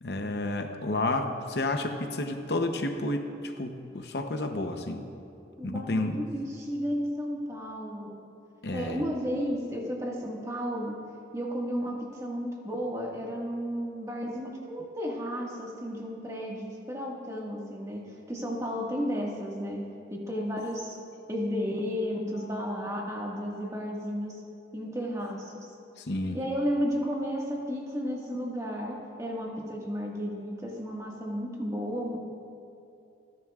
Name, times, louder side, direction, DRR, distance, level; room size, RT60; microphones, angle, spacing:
voice 1, 0.0-5.1 5.6-6.2 8.6-9.0 26.0-26.4, left 2 dB, 65° left, 5 dB, 0.8 m, -31 dB
voice 2, 5.6-8.2 8.7-11.0 11.3-18.0 18.3-19.8 20.1-21.0 21.3-24.4 24.7-25.7 26.3-32.2, equal, 20° right, -2 dB, 1.7 m, -33 dB
27.0 x 11.0 x 2.4 m, 2.6 s
head